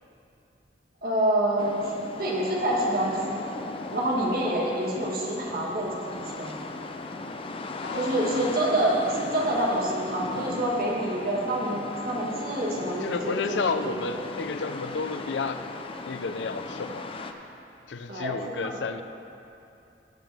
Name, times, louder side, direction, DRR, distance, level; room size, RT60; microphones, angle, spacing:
voice 1, 1.0-1.9 2.2-3.4 3.9-6.6 7.9-14.2 18.1-18.8, right 1 dB, 55° right, -3 dB, 1.9 m, -27 dB
sound 1, 1.6-17.3, left 2 dB, 30° left, 0.5 m, -37 dB
voice 2, 7.8-8.5 13.0-15.6 16.0-17.1 17.9-19.0, left 4 dB, 80° left, 9 dB, 0.5 m, -31 dB
16.0 x 7.4 x 3.5 m, 2.7 s
head